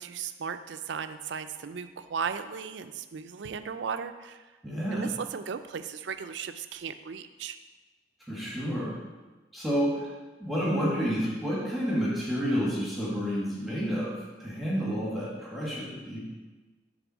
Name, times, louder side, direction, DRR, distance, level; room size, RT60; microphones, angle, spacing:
voice 1, 0.0-4.4 4.9-7.6, right 6 dB, 80° right, 10 dB, 0.4 m, -36 dB
voice 2, 4.6-5.1 8.3-8.9 9.5-10.1 10.4-14.1 14.4-16.3, equal, ahead, -7 dB, 1.6 m, -29 dB
6.9 x 3.7 x 6.2 m, 1.2 s
head